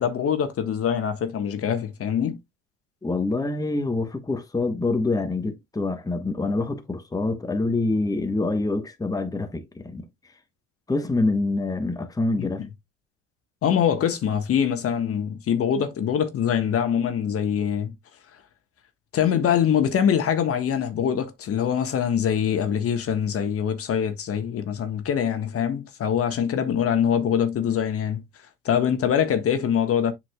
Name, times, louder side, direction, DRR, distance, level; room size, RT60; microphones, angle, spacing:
voice 1, 0.0-2.4 12.4-12.7 13.6-17.9 19.1-28.2 28.6-30.1, left 8 dB, 45° left, 1.4 m, -24 dB
voice 2, 3.0-10.1 10.9-12.6, left 2 dB, 10° left, 1.2 m, -26 dB
7.8 x 5.8 x 2.3 m
hypercardioid pair, 70°, 32 cm